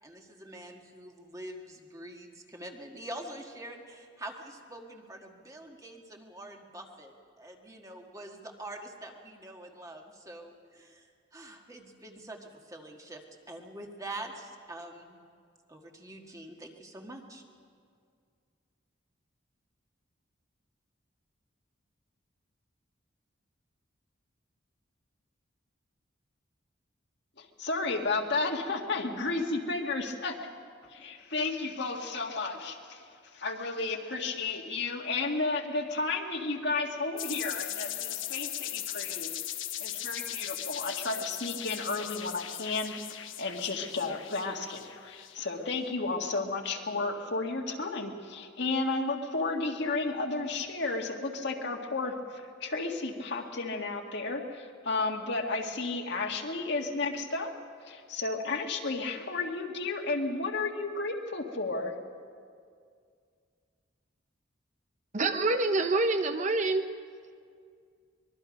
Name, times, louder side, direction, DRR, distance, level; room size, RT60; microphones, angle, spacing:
voice 1, 0.0-15.2 15.7-17.4, right 1 dB, 20° right, 2 dB, 1.7 m, -45 dB
voice 2, 27.4-30.5 30.9-33.0 33.3-39.3 39.8-57.5 57.9-61.9, left 3 dB, 60° left, 2 dB, 1.9 m, -33 dB
sound 1, 37.2-45.7, left 12 dB, 85° left, 1.0 m, -38 dB
voice 3, 65.1-66.8, right 2 dB, 40° right, 8 dB, 0.7 m, -26 dB
24.0 x 22.0 x 5.3 m, 2.2 s
head